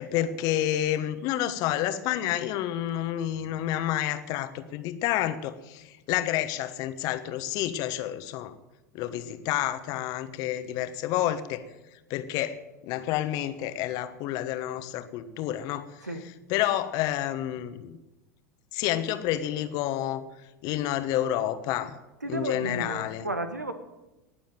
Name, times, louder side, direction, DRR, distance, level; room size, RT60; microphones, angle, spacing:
voice 1, 0.0-8.5 8.9-11.6 12.1-15.9 16.5-18.0 18.7-20.2 20.6-22.0 22.3-23.3, left 12 dB, 45° left, 11 dB, 1.2 m, -29 dB
voice 2, 22.2-23.7, right 2 dB, 85° right, 9 dB, 1.5 m, -33 dB
19.0 x 7.2 x 9.1 m, 1.0 s
figure-of-eight pair, 85°, 9 cm